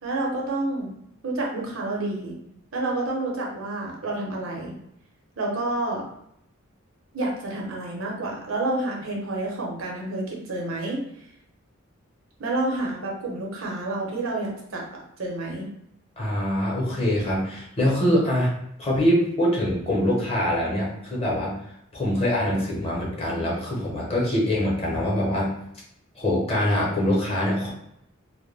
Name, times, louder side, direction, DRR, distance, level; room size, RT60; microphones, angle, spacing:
voice 1, 0.0-0.9 1.2-2.4 2.7-4.7 5.4-6.0 7.1-11.0 12.4-15.7, right 2 dB, 80° right, -1 dB, 0.7 m, -29 dB
voice 2, 16.2-18.5 18.8-21.6 21.9-25.5 26.2-27.7, left 1 dB, 30° left, -4 dB, 0.7 m, -24 dB
2.2 x 2.1 x 3.2 m, 0.76 s
head